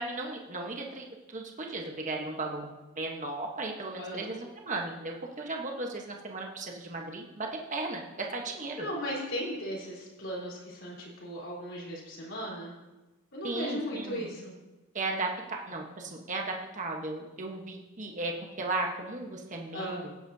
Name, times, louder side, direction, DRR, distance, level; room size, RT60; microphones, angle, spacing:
voice 1, 0.0-8.9 13.4-14.3 14.9-20.1, right 2 dB, 35° right, 1 dB, 1.2 m, -36 dB
voice 2, 4.0-4.3 8.8-12.7 13.3-14.5 19.7-20.1, equal, 55° left, -4 dB, 4.1 m, -37 dB
16.5 x 10.0 x 2.8 m, 1.1 s
head